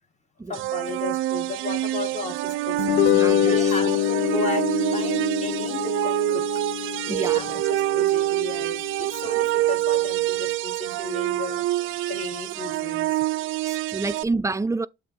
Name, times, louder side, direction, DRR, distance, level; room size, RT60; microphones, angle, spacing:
voice 1, 0.5-6.5 6.8-13.2, left 3 dB, 35° left, 1.9 m, -35 dB
Nephlim pad, 0.5-14.2, right 16 dB, 85° right, 0.4 m, -26 dB
sound 1, 2.8-9.3, left 11 dB, 90° left, 0.6 m, -25 dB
voice 2, 3.1-3.7 7.1-7.6 13.6-14.9, right 3 dB, 15° right, 0.4 m, -28 dB
7.6 x 2.9 x 5.8 m
cardioid pair, 90°, 20 cm